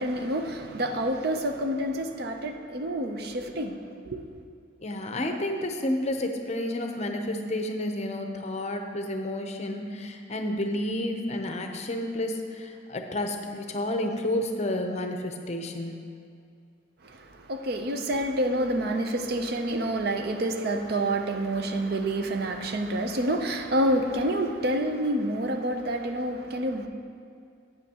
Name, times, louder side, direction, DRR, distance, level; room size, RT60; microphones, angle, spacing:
voice 1, 0.0-3.8 4.1-4.2 17.0-26.9, right 1 dB, 55° right, 5 dB, 0.6 m, -28 dB
voice 2, 4.8-16.0, left 1 dB, 35° left, 4 dB, 0.6 m, -30 dB
11.5 x 8.2 x 2.9 m, 2.4 s
head